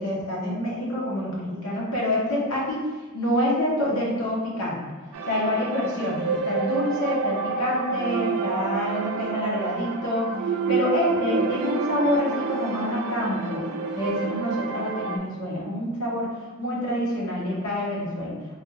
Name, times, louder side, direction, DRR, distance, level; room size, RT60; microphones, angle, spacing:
voice 1, 0.0-2.8 3.1-4.8 5.3-10.3 10.7-13.6 13.9-16.3 16.6-18.3, left 1 dB, 80° left, -5 dB, 1.0 m, -27 dB
sound 1, 5.1-15.2, right 5 dB, 80° right, 0.3 m, -29 dB
3.4 x 2.3 x 2.8 m, 1.3 s
head